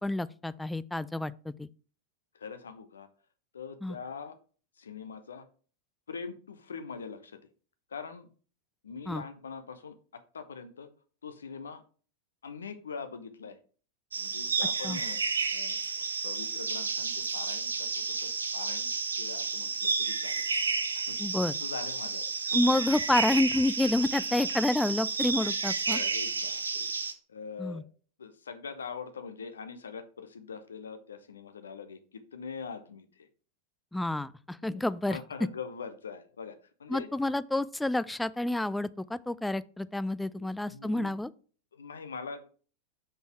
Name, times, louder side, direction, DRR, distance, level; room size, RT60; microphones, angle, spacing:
voice 1, 0.0-1.7 3.8-4.0 9.1-9.2 14.8-15.0 21.2-21.5 22.5-26.0 27.6-27.8 33.9-35.2 36.9-41.3, left 1 dB, 5° left, 0.3 m, -29 dB
voice 2, 2.3-3.1 3.5-4.4 4.8-5.5 6.1-7.4 7.9-8.3 8.8-9.9 10.3-10.9 11.2-11.8 12.4-13.6 14.1-15.2 15.5-18.9 19.2-20.5 20.9-21.2 21.6-22.3 24.3-24.4 25.9-26.9 27.3-27.8 28.2-33.3 34.6-37.1 40.3-41.1 41.7-42.4, left 5 dB, 70° left, 0.9 m, -43 dB
sound 1, 14.1-27.1, right 4 dB, 75° right, 0.8 m, -31 dB
6.2 x 5.4 x 4.6 m
figure-of-eight pair, 90°, 0 cm